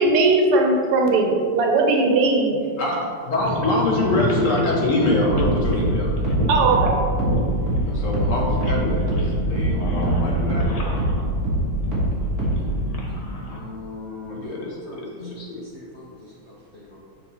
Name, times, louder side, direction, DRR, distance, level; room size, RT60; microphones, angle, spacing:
voice 1, 0.0-2.6 6.5-7.0, right 3 dB, 85° right, 1 dB, 1.9 m, -18 dB
voice 2, 2.8-6.4 7.8-10.7 13.5-15.6, left 2 dB, 55° left, -2 dB, 0.9 m, -25 dB
sound 1, 3.4-13.6, equal, 35° left, 0.5 m, -28 dB
sound 2, 5.3-10.2 10.5-12.7, right 1 dB, 45° right, 2.1 m, -23 dB
voice 3, 14.4-15.1 15.7-17.0, left 1 dB, 85° left, -5 dB, 0.5 m, -46 dB
7.6 x 5.6 x 4.1 m, 2.4 s
omnidirectional pair, 2.4 m